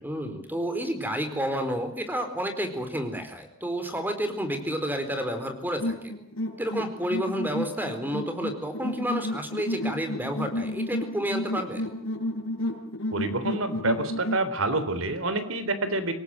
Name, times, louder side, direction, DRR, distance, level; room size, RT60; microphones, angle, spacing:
voice 1, 0.0-6.0 6.6-11.8, equal, 10° right, 8 dB, 4.4 m, -30 dB
sound 1, 5.8-14.5, left 1 dB, 80° left, 5.7 m, -32 dB
voice 2, 13.1-16.1, right 2 dB, 75° right, 11 dB, 3.6 m, -27 dB
26.5 x 18.5 x 9.0 m, 0.63 s
head